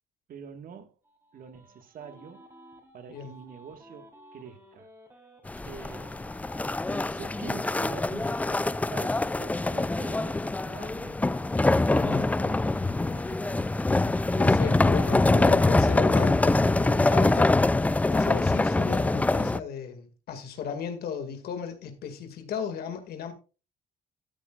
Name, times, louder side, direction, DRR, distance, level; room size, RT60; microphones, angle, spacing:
voice 1, 0.3-1.0 1.3-2.5 2.9-4.9 5.6-6.2 6.9-11.2 11.9-13.6, right 7 dB, 55° right, 1.7 m, -46 dB
sound 1, 1.0-5.4 5.7-10.6 10.9-14.4, equal, 15° right, 3.8 m, -53 dB
sound 2, 5.5-19.6, left 2 dB, 10° left, 0.4 m, -24 dB
voice 2, 11.9-12.3 14.4-17.7 18.1-23.3, left 7 dB, 65° left, 2.2 m, -35 dB
14.0 x 9.4 x 2.4 m
cardioid pair, 110°, 17 cm